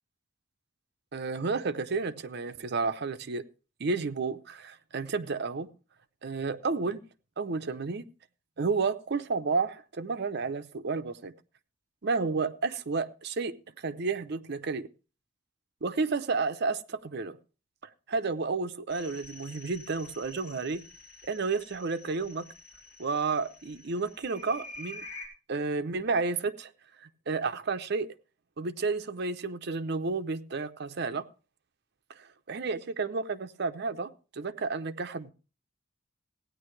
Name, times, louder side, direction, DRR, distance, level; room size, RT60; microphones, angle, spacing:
voice 1, 1.1-3.4 3.8-5.7 6.2-7.0 7.4-8.0 8.6-11.3 12.0-14.9 15.8-17.4 18.1-20.8 21.2-22.5 23.0-25.0 25.5-26.7 27.0-28.1 28.6-31.3 32.2-35.3, right 4 dB, 60° right, 0.7 m, -31 dB
sound 1, 18.9-25.3, left 2 dB, 50° left, 3.4 m, -48 dB
16.0 x 9.6 x 3.2 m
head